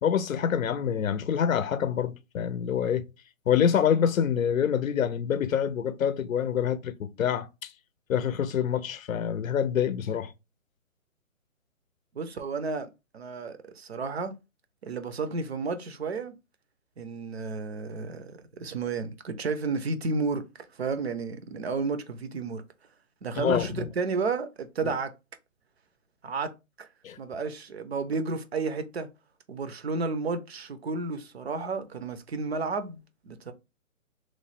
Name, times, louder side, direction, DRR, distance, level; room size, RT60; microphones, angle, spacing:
voice 1, 0.0-3.1 3.5-7.7 8.1-10.3 23.4-23.9 24.8-24.9 27.0-27.2, left 8 dB, 75° left, 0.6 m, -26 dB
voice 2, 12.1-12.9 13.1-14.3 14.8-16.3 17.0-18.3 18.6-20.5 20.7-22.6 23.2-25.1 26.2-26.5 26.8-26.9 27.2-29.1 29.5-33.5, right 4 dB, 50° right, 0.5 m, -32 dB
3.1 x 2.1 x 4.1 m
hypercardioid pair, 160°, 41 cm